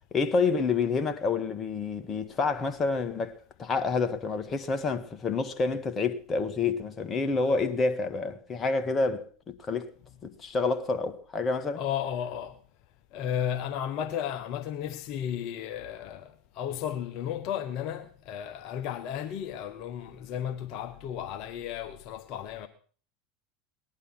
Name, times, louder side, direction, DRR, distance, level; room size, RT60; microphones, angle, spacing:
voice 1, 0.1-3.3 3.6-9.9 10.2-11.8, left 4 dB, 30° left, 1.8 m, -28 dB
voice 2, 11.8-12.6 13.1-22.7, left 9 dB, 55° left, 1.1 m, -34 dB
19.0 x 11.0 x 6.0 m
hypercardioid pair, 85°, 0 cm